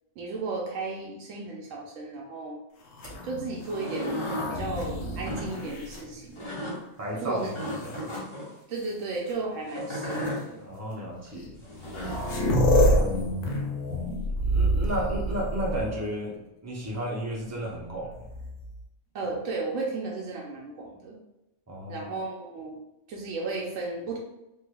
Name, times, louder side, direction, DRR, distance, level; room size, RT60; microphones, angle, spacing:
voice 1, 0.2-2.6 3.2-4.2 4.5-6.5 7.2-7.5 8.7-10.6 12.8-13.7 19.1-21.2 21.9-22.8 23.1-24.2, right 3 dB, 90° right, -2 dB, 1.0 m, -34 dB
sound 1, 2.9-6.8 7.5-8.2 9.3-9.4 10.1-10.3 11.4-11.5 11.7-16.2 18.1-18.8, equal, 80° left, 1.0 m, -28 dB
sound 2, 3.6-4.5 5.1-5.5 6.4-6.8 7.5-8.5 9.7-10.4 11.6-12.3, equal, 25° left, 1.2 m, -34 dB
voice 2, 7.0-8.1 10.6-11.6 14.4-18.1 21.7-22.1, right 1 dB, 20° right, -4 dB, 0.5 m, -33 dB
3.2 x 3.2 x 2.2 m, 0.93 s
omnidirectional pair, 1.3 m